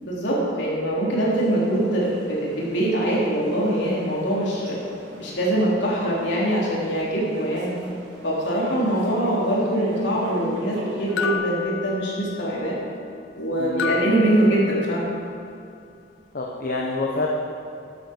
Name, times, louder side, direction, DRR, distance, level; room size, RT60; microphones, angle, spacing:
voice 1, 0.0-4.8 5.2-7.7 8.2-12.8 13.4-14.6 14.9-15.1, right 1 dB, 65° left, -6 dB, 3.8 m, -23 dB
sound 1, 1.4-11.3, right 1 dB, 65° right, 2.8 m, -40 dB
sound 2, 11.2-12.6 13.8-15.2, left 7 dB, 85° left, 0.5 m, -31 dB
voice 2, 13.6-13.9 16.3-17.3, left 3 dB, 50° left, -2 dB, 1.1 m, -27 dB
13.0 x 12.5 x 4.6 m, 2.4 s
head